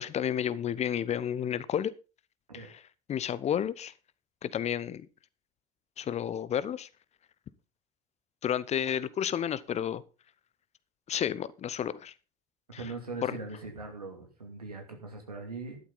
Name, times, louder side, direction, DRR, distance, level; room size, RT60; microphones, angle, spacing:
voice 1, 0.0-1.9 2.5-2.8 3.1-3.9 4.4-5.1 6.0-6.9 8.4-10.0 11.1-12.1 12.7-12.8 13.2-13.4, left 9 dB, 35° left, 0.9 m, -31 dB
voice 2, 12.7-15.8, right 3 dB, 80° right, 2.6 m, -40 dB
13.0 x 11.5 x 4.0 m
figure-of-eight pair, 60°, 19 cm